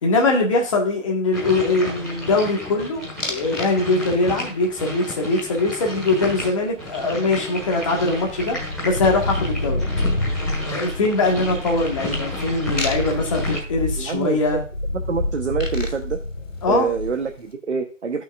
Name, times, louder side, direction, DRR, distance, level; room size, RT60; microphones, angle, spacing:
voice 1, 0.0-8.6 8.8-9.8 10.3-14.6 16.6-16.9, left 3 dB, 25° left, 0 dB, 1.4 m, -22 dB
sound 1, 1.3-13.6, left 1 dB, ahead, 1.8 m, -32 dB
sound 2, 3.2-3.7 4.0-4.5 6.9-7.0 7.3-17.3, left 2 dB, 80° left, 2.5 m, -28 dB
voice 2, 14.0-14.4 15.1-16.2 16.7-18.2, right 5 dB, 60° right, 4 dB, 1.0 m, -25 dB
13.5 x 5.6 x 2.4 m, 0.39 s
figure-of-eight pair, 155°, 38 cm